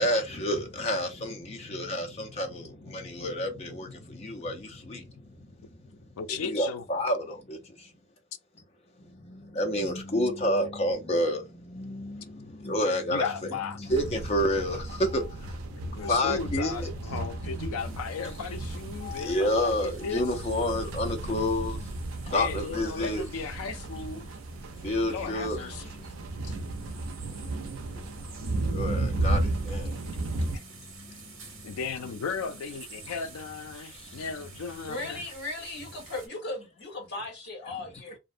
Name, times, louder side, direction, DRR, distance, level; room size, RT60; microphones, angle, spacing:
voice 1, 0.0-7.9 9.0-17.3 19.0-23.3 24.7-26.9 27.9-31.8 33.9-34.2, left 1 dB, 30° left, 0.5 m, -31 dB
voice 2, 6.2-6.8 13.1-13.8 15.7-20.3 22.2-24.3 25.0-25.9 26.4-26.6 30.5-30.6 31.6-35.2, left 5 dB, 85° left, 0.4 m, -36 dB
sound 1, 13.9-30.6, right 2 dB, 80° right, 0.4 m, -34 dB
sound 2, 17.8-36.3, right 4 dB, 65° right, 0.9 m, -51 dB
voice 3, 34.9-38.2, left 2 dB, 50° left, 1.1 m, -37 dB
2.5 x 2.0 x 2.5 m
head